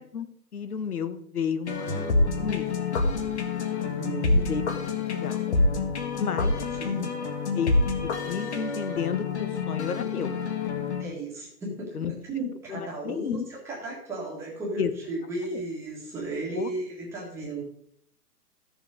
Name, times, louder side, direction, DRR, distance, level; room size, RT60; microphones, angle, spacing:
voice 1, 0.0-2.1 2.4-2.8 4.5-4.6 5.1-5.5 6.2-6.5 7.5-7.8 8.0-10.3 11.9-12.1 12.7-13.5 14.8-14.9 15.5-15.6 16.5-16.7, left 7 dB, 65° left, 11 dB, 1.4 m, -32 dB
sound 1, 1.7-11.0, left 3 dB, 45° left, 1.7 m, -27 dB
sound 2, 1.8-4.8, left 2 dB, 15° left, 1.7 m, -42 dB
voice 2, 3.7-4.5 6.3-6.4 6.8-7.1 11.0-17.6, right 2 dB, 5° right, -4 dB, 1.7 m, -35 dB
14.0 x 7.2 x 4.9 m, 0.70 s
hypercardioid pair, 170°, 49 cm